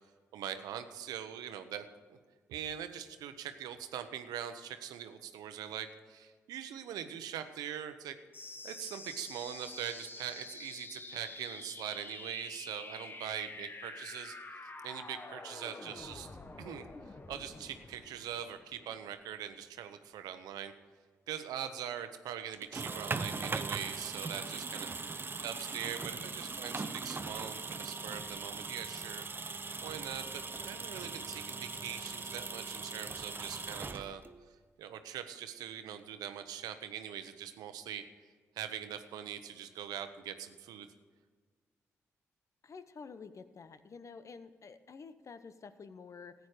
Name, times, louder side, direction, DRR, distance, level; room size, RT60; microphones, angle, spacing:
voice 1, 0.3-2.2 2.5-8.2 8.6-14.4 14.8-16.3 16.6-16.8 17.3-20.7 21.3-24.9 25.4-29.2 29.8-34.2 34.8-38.0 38.6-40.9, right 10 dB, 80° right, 9 dB, 0.8 m, -42 dB
sound 1, 8.3-19.3, left 2 dB, 35° left, 1.3 m, -48 dB
sound 2, 22.5-34.4, right 4 dB, 35° right, 0.8 m, -40 dB
voice 2, 42.6-46.3, left 5 dB, 50° left, 12 dB, 0.9 m, -49 dB
14.5 x 9.4 x 5.0 m, 1.5 s
hypercardioid pair, 45°, 6 cm